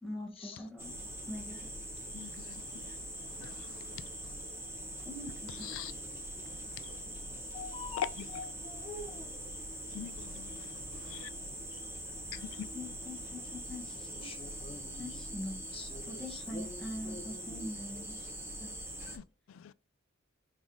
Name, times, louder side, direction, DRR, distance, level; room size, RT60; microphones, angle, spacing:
voice 1, 0.0-1.0 1.2-1.6 5.1-5.7 12.7-14.3 15.0-15.6 16.0-18.3 18.6-18.7, left 1 dB, 5° left, 1.2 m, -43 dB
sound 1, 0.8-19.2, right 1 dB, 10° right, 1.4 m, -43 dB
voice 2, 2.1-2.6 3.4-3.5 3.9-4.0 5.6-5.9 8.0-8.4 9.9-10.5 11.1-11.3 12.3-12.4 19.1-19.2 19.6-19.7, left 9 dB, 80° left, 0.3 m, -41 dB
voice 3, 7.5-8.5 14.2-15.2 15.7-17.7, left 4 dB, 30° left, 0.8 m, -46 dB
4.1 x 3.5 x 3.7 m
head